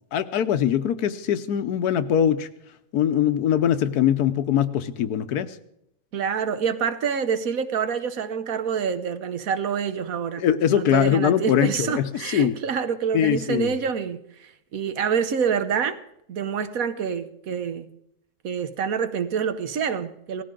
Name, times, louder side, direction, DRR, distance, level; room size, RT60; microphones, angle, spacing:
voice 1, 0.1-2.5 2.9-5.5 10.4-12.5 13.1-13.7, left 10 dB, 80° left, 1.3 m, -22 dB
voice 2, 6.1-10.4 10.7-16.0 16.3-17.9 18.4-20.4, right 7 dB, 65° right, 1.3 m, -27 dB
18.0 x 15.0 x 3.8 m
omnidirectional pair, 1.7 m